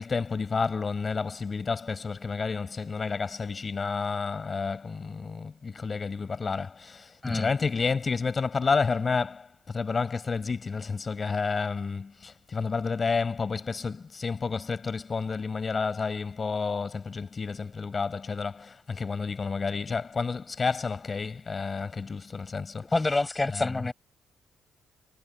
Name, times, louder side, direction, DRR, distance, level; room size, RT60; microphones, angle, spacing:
voice 1, 0.0-22.9 23.5-23.7, left 5 dB, 35° left, 5.2 m, -30 dB
voice 2, 22.9-23.9, left 2 dB, 20° left, 7.7 m, -27 dB
cardioid pair, 90°, 0 cm